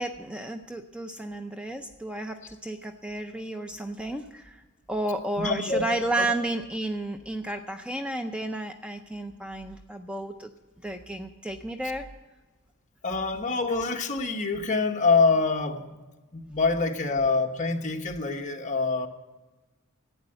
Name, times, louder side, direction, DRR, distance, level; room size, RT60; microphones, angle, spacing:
voice 1, 0.0-4.6 4.9-10.5 10.8-12.1, right 1 dB, 5° right, 6 dB, 0.5 m, -32 dB
voice 2, 5.4-5.8 6.2-6.3 13.0-15.8 16.3-19.1, left 4 dB, 35° left, 2 dB, 1.2 m, -25 dB
12.5 x 8.9 x 7.8 m, 1.2 s
head